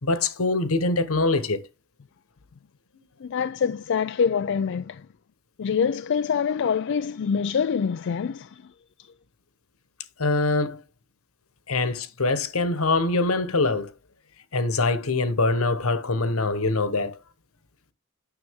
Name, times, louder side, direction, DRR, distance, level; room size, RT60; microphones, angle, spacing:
voice 1, 0.0-1.6 10.2-10.8 11.7-13.9 14.5-17.1, left 3 dB, 75° left, 1.2 m, -23 dB
voice 2, 3.2-5.1 5.6-8.7, left 6 dB, 60° left, 0.4 m, -25 dB
9.6 x 6.7 x 3.6 m
head